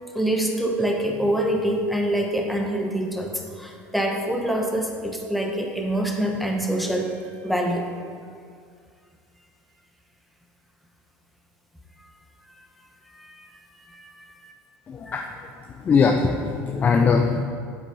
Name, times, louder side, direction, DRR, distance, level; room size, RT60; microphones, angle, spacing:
voice 1, 0.1-7.9 13.1-13.5 13.7-14.1 14.4-14.5 15.1-15.2, right 1 dB, ahead, 2 dB, 1.0 m, -26 dB
voice 2, 14.9-15.3 15.8-17.4, left 5 dB, 30° left, 3 dB, 0.5 m, -21 dB
8.1 x 7.3 x 4.7 m, 2.2 s
supercardioid pair, 125°, 6 cm